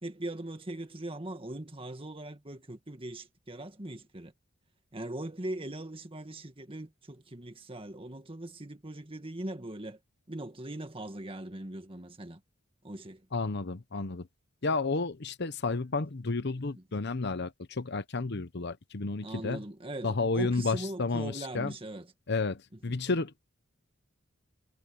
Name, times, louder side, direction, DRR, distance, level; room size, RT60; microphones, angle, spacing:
voice 1, 0.0-4.3 4.9-10.0 10.3-12.4 12.8-13.3 19.2-22.1 22.9-23.0, right 1 dB, 25° right, 1.8 m, -40 dB
voice 2, 13.3-14.3 14.6-19.6 20.0-21.7 22.3-23.4, left 3 dB, 55° left, 0.9 m, -31 dB
head